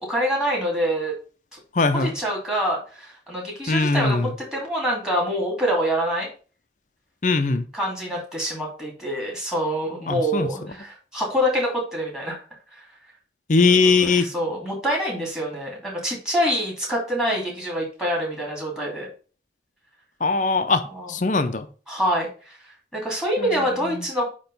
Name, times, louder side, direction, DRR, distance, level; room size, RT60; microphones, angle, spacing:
voice 1, 0.1-1.1 1.9-4.2 4.5-6.3 7.7-12.4 13.8-19.1 20.9-21.1 21.9-22.6 22.9-24.3, equal, 5° right, 2.6 m, -26 dB
voice 2, 1.7-2.1 3.7-4.3 7.2-7.7 10.1-10.5 13.5-14.3 20.2-21.7 23.4-24.0, left 4 dB, 45° left, 0.6 m, -21 dB
8.9 x 3.0 x 5.4 m
head